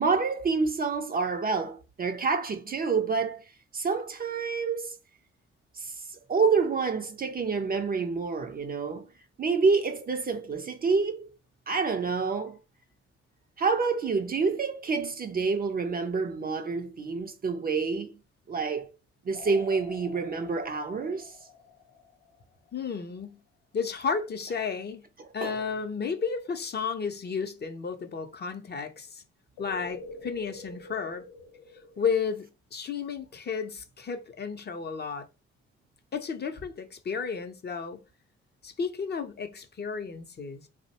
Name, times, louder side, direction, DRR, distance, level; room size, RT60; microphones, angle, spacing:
voice 1, 0.0-3.4 3.7-5.0 5.8-5.9 6.3-9.1 9.4-11.3 11.7-12.6 13.6-18.1 18.5-18.9 19.3-21.3 25.4-25.6, right 4 dB, 30° right, 0.4 m, -28 dB
sound 1, 19.3-22.7 29.6-32.4, left 4 dB, 70° left, 0.7 m, -46 dB
voice 2, 22.7-23.4 23.7-25.0 25.3-29.2 29.6-31.2 32.0-35.3 36.1-38.0 38.6-40.7, left 5 dB, 35° left, 0.5 m, -33 dB
2.5 x 2.0 x 2.8 m
hypercardioid pair, 50°, 30 cm